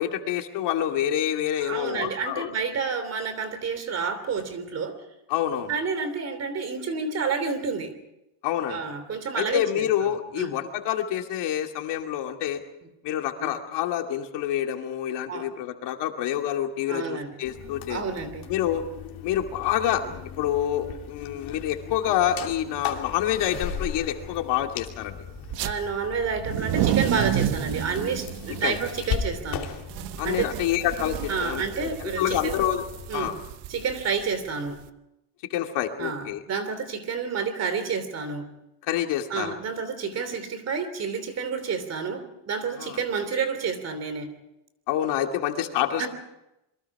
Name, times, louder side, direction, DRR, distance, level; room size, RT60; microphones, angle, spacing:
voice 1, 0.0-2.5 5.3-5.7 8.4-8.8 9.4-12.6 13.0-18.0 18.5-18.8 19.2-25.2 28.6-28.8 30.2-32.8 33.1-33.4 35.5-36.4 38.9-39.6 42.8-43.0 44.9-46.1, left 11 dB, 80° left, 4 dB, 2.6 m, -27 dB
voice 2, 1.6-5.0 5.7-7.9 8.7-10.5 13.4-13.5 15.3-15.5 16.9-17.3 17.9-18.5 20.0-20.1 25.6-29.7 30.2-30.5 31.3-32.6 33.1-33.4 33.7-34.8 36.0-38.5 39.3-44.3 46.0-46.1, right 5 dB, 40° right, 11 dB, 3.2 m, -29 dB
sound 1, 17.4-33.1, left 8 dB, 55° left, 2.9 m, -38 dB
sound 2, 25.4-25.7 26.3-34.8, right 11 dB, 80° right, 1.2 m, -31 dB
27.5 x 23.0 x 4.9 m, 0.88 s
cardioid pair, 165°, 41 cm